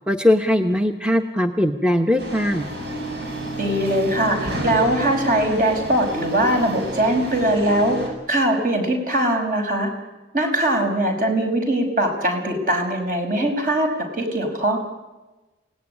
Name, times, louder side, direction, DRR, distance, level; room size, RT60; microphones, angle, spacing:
voice 1, 0.1-2.7, left 1 dB, 5° right, 4 dB, 1.0 m, -20 dB
sound 1, 2.2-8.1, right 1 dB, 70° right, 7.8 m, -31 dB
voice 2, 3.6-8.0 8.3-9.9 10.3-14.8, right 1 dB, 50° right, 3 dB, 5.7 m, -21 dB
28.5 x 18.0 x 9.9 m, 1.1 s
head